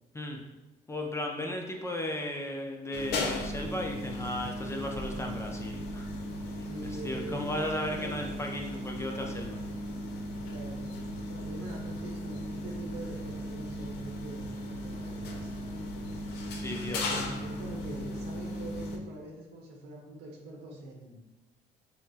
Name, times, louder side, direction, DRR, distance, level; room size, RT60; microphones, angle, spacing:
voice 1, 0.9-6.1 7.0-9.6 16.6-17.0, left 1 dB, 15° left, 1 dB, 0.4 m, -35 dB
sound 1, 2.9-19.0, left 1 dB, 75° left, 0.6 m, -37 dB
voice 2, 6.6-8.4 10.5-15.8 16.8-21.2, right 2 dB, 85° right, 0 dB, 0.9 m, -44 dB
5.6 x 2.0 x 2.7 m, 1.1 s
cardioid pair, 110°, 17 cm